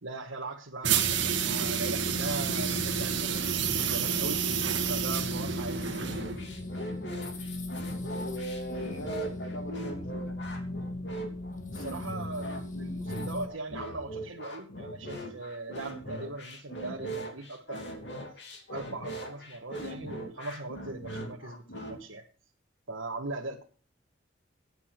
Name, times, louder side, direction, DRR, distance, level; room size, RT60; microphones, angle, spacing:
voice 1, 0.0-4.5 4.8-6.0 11.7-18.1 18.7-22.2 22.9-23.6, right 2 dB, 80° right, -1 dB, 1.4 m, -39 dB
sound 1, 0.8-6.5, right 7 dB, 65° right, 1.7 m, -29 dB
playsound aw czerwińska, 1.0-13.5, left 1 dB, 40° left, 1.5 m, -38 dB
sound 2, 6.0-22.0, right 1 dB, 60° left, 2.9 m, -40 dB
voice 2, 7.2-7.5 8.1-10.4, equal, 85° left, 2 dB, 3.7 m, -40 dB
14.0 x 9.8 x 4.5 m, 0.38 s
head